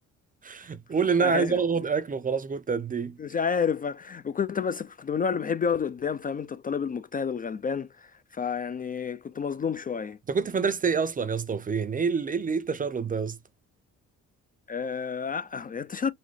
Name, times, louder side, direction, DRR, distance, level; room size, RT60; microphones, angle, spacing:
voice 1, 0.4-3.2 10.3-13.4, right 5 dB, 30° right, 0.5 m, -27 dB
voice 2, 1.2-1.6 3.2-10.2 14.7-16.1, left 6 dB, 30° left, 0.4 m, -30 dB
4.1 x 2.1 x 3.1 m
cardioid pair, 90°, 30 cm